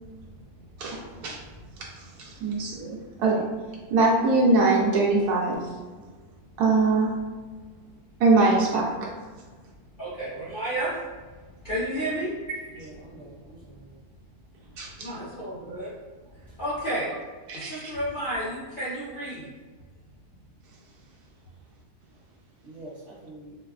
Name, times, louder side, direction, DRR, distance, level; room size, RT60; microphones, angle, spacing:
voice 1, 0.8-1.4 2.0-3.5 3.9-5.7 6.6-7.1 8.2-9.1 12.7-12.9 14.8-15.1 17.5-17.9, right 3 dB, 90° right, -3 dB, 1.2 m, -23 dB
voice 2, 10.0-10.9 11.6-12.3 15.0-15.9 16.6-17.1 17.5-19.5, right 1 dB, 40° left, -10 dB, 0.8 m, -31 dB
voice 3, 12.7-13.9 22.6-23.6, right 1 dB, 60° right, -9 dB, 0.9 m, -45 dB
4.2 x 2.2 x 2.3 m, 1.4 s
omnidirectional pair, 1.6 m